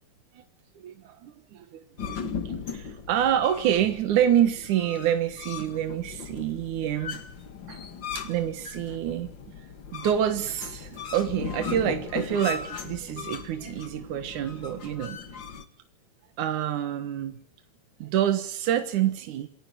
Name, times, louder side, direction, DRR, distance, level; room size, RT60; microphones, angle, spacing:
voice 1, 0.8-2.4 2.7-7.2 7.7-7.9 8.1-9.3 9.9-15.2 16.4-17.4 18.0-19.5, right 10 dB, 85° right, 8 dB, 2.9 m, -27 dB
sound 1, 2.0-15.6, left 6 dB, 45° left, 2.2 m, -38 dB
27.5 x 17.0 x 9.3 m, 0.62 s
omnidirectional pair, 3.4 m